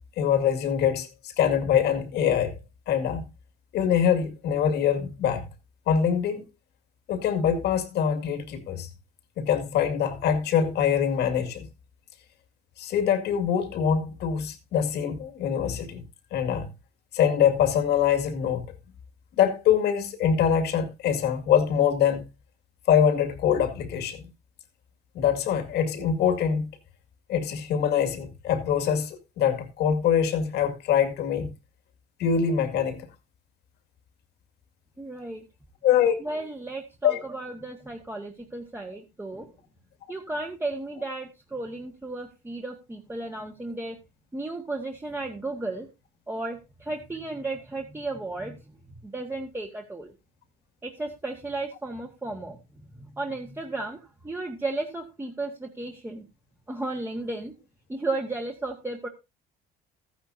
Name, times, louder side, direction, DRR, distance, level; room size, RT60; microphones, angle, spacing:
voice 1, 0.2-2.6 2.9-3.3 3.7-5.5 5.9-6.4 7.1-8.9 9.4-11.7 12.8-16.0 16.3-16.7 17.1-18.6 19.4-22.2 22.9-24.2 25.1-26.7 27.3-31.5 32.2-33.1 35.8-36.1 37.0-37.2, left 8 dB, 75° left, 2.3 m, -24 dB
voice 2, 35.0-35.4 36.2-39.5 40.1-44.0 44.3-45.9 46.3-48.6 49.0-50.1 50.8-52.6 53.0-56.2 56.7-57.5 57.9-59.1, right 2 dB, 15° right, 1.7 m, -34 dB
14.5 x 10.5 x 2.8 m
cardioid pair, 110°, 17 cm